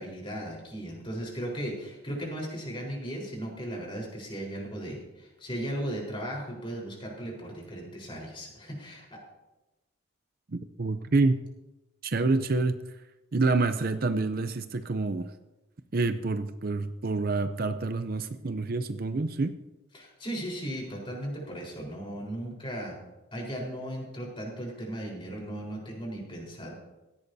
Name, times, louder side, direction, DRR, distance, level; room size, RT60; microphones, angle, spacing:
voice 1, 0.0-9.2 19.9-23.0 23.3-26.7, right 1 dB, 25° left, -1 dB, 4.1 m, -36 dB
voice 2, 10.5-11.4 12.0-12.8 13.3-15.3 15.9-19.6, right 3 dB, 45° right, 10 dB, 0.5 m, -27 dB
16.5 x 15.5 x 2.7 m, 1.0 s
head